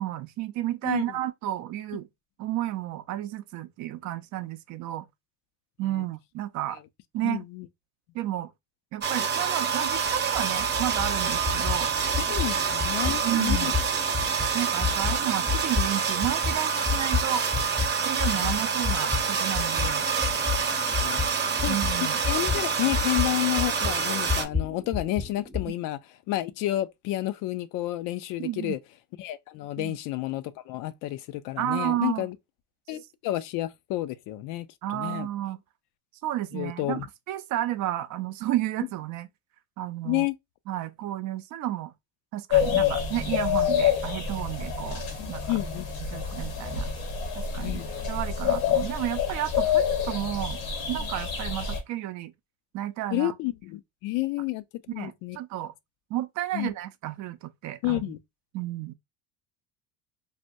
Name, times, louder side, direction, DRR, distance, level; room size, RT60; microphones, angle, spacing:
voice 1, 0.0-2.1 2.4-5.1 5.8-6.8 7.1-7.4 8.1-8.5 8.9-11.9 13.1-13.8 14.5-17.5 18.1-20.1 21.7-22.2 28.4-28.8 29.8-30.0 31.6-32.3 34.8-35.6 36.2-39.3 39.8-40.3 40.7-41.9 42.3-45.0 45.3-45.4 46.1-46.9 47.4-47.8 48.1-50.6 50.9-52.3 52.7-53.3 55.0-55.7 56.1-58.1 58.5-58.9, right 13 dB, 55° right, 0.5 m, -32 dB
voice 2, 7.2-7.7 12.2-13.7 18.3-18.5 21.0-21.2 21.6-26.0 26.3-28.8 29.2-32.4 32.9-35.3 36.5-37.1 40.0-40.4 42.7-42.9 45.2-45.9 47.6-47.9 51.0-51.1 53.1-54.6 54.9-55.4 56.5-56.7 57.8-58.2, left 16 dB, 60° left, 0.5 m, -30 dB
sound 1, 9.0-24.4, right 6 dB, 30° right, 0.8 m, -27 dB
sound 2, 9.9-17.9 18.2-25.7, left 5 dB, ahead, 0.6 m, -32 dB
sound 3, 42.5-51.8, left 8 dB, 80° left, 1.2 m, -27 dB
3.3 x 2.2 x 2.6 m
supercardioid pair, 95°, 35 cm